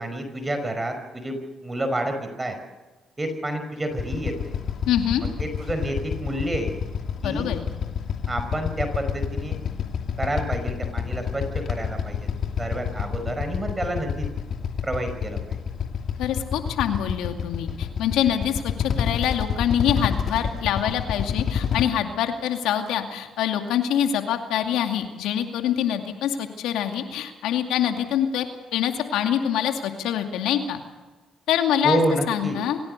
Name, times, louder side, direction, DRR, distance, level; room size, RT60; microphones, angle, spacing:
voice 1, 0.0-2.6 3.2-4.5 5.4-6.7 7.2-7.5 8.3-9.6 10.2-12.3 12.6-14.3 14.8-15.6 31.8-32.6, right 1 dB, 20° right, 7 dB, 5.4 m, -29 dB
Motorcycle / Idling, 3.9-21.8, left 7 dB, 60° left, 2.6 m, -28 dB
voice 2, 4.9-5.2 7.2-7.6 16.2-28.5 28.7-30.8 31.5-32.0 32.3-32.8, left 10 dB, 75° left, 5 dB, 2.4 m, -25 dB
26.5 x 16.5 x 6.7 m, 1.2 s
hypercardioid pair, 55°, 0 cm